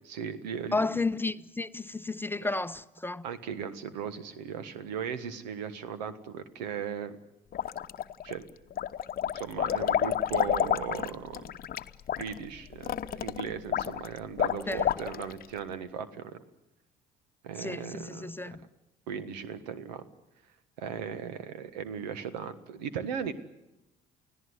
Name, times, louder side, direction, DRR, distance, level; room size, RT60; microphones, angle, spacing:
voice 1, 0.1-1.0 2.4-2.6 3.2-7.1 8.2-8.4 9.3-11.5 12.2-16.4 17.4-18.6 19.1-20.0 20.8-23.3, right 7 dB, 85° right, 1.5 m, -37 dB
voice 2, 0.7-3.2 14.7-14.9 17.6-18.6, left 3 dB, 10° left, 0.8 m, -32 dB
sound 1, 7.5-8.3 8.7-15.4, left 10 dB, 45° left, 0.9 m, -30 dB
29.5 x 16.5 x 8.1 m
hypercardioid pair, 60°, 21 cm